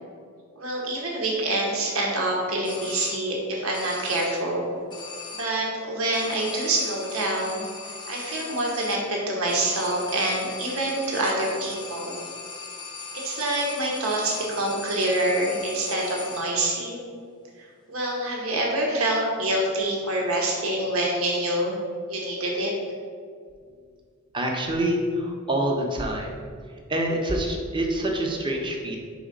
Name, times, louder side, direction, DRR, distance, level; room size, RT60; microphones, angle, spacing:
voice 1, 0.6-4.6 5.4-12.2 13.1-17.0 17.6-21.8 22.1-22.7, right 1 dB, 85° right, -2 dB, 1.1 m, -26 dB
sound 1, 2.6-3.5 3.7-4.6 4.9-5.7 6.1-16.7, left 4 dB, 20° left, 0.5 m, -39 dB
voice 2, 24.3-26.3 26.9-29.0, right 1 dB, 25° right, 1 dB, 0.7 m, -26 dB
4.9 x 4.0 x 5.1 m, 2.1 s
head